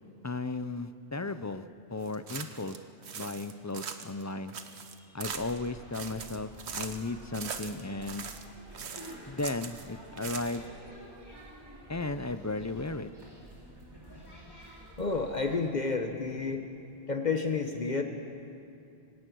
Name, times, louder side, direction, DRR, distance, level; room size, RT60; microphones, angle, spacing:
voice 1, 0.2-1.6 1.9-2.8 3.1-4.5 5.1-8.3 9.3-10.7 11.9-13.1, left 3 dB, 25° left, 11 dB, 0.4 m, -35 dB
sound 1, 2.1-2.8 3.0-4.2 4.5-5.7 5.9-7.1 7.3-8.5 8.7-9.9 10.2-10.8, right 6 dB, 90° right, 1.3 m, -41 dB
sound 2, 5.2-15.6, right 1 dB, 20° right, 3.3 m, -50 dB
voice 2, 15.0-16.6 17.1-18.0, left 4 dB, 45° left, 5 dB, 1.1 m, -30 dB
25.0 x 17.5 x 6.3 m, 2.5 s
omnidirectional pair, 1.1 m